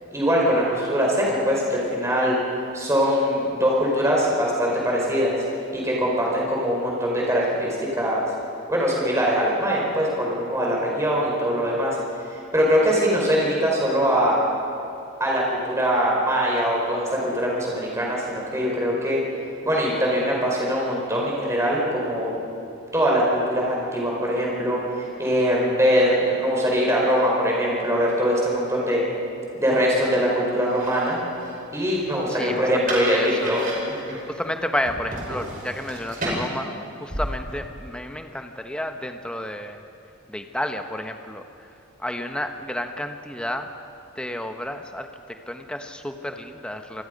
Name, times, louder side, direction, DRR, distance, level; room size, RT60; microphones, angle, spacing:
voice 1, 0.1-2.4 2.7-5.4 5.7-8.2 8.7-12.0 12.3-14.4 15.2-19.2 19.6-22.3 22.9-29.0 29.5-31.2 31.7-33.6 33.9-34.2, equal, 15° right, -3 dB, 4.8 m, -22 dB
sound 1, 30.6-38.0, right 1 dB, 40° right, 5.2 m, -34 dB
voice 2, 32.3-33.5 34.3-39.8 40.3-41.7 42.0-43.7 44.1-47.0, left 1 dB, 5° left, 5 dB, 1.0 m, -31 dB
26.5 x 20.0 x 5.3 m, 2.6 s
head